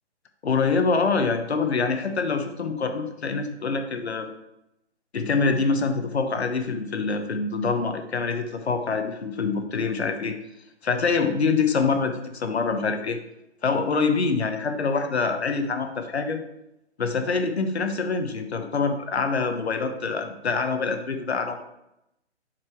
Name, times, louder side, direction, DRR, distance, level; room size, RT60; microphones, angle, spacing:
voice 1, 0.4-4.3 5.1-10.4 10.8-13.2 13.6-16.4 17.0-21.6, left 4 dB, 65° left, 7 dB, 1.2 m, -25 dB
7.8 x 5.8 x 4.7 m, 0.84 s
hypercardioid pair, 165°, 35 cm